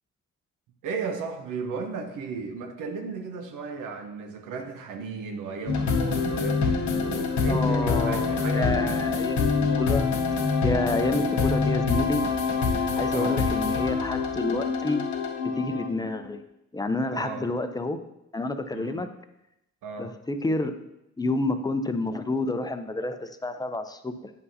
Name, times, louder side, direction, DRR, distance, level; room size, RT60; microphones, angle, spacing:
voice 1, 0.8-9.0 13.1-13.4 17.1-17.5 18.7-19.0 19.8-20.1, right 5 dB, 90° right, 5 dB, 1.0 m, -35 dB
sound 1, 5.7-16.1, left 4 dB, 70° left, 0.9 m, -25 dB
voice 2, 7.5-10.1 10.6-12.2 13.0-15.0 15.6-16.4 16.7-18.0 18.3-19.1 20.0-20.9 21.2-24.3, left 2 dB, 15° left, 8 dB, 0.5 m, -29 dB
9.4 x 5.5 x 2.8 m, 0.85 s
cardioid pair, 90°, 30 cm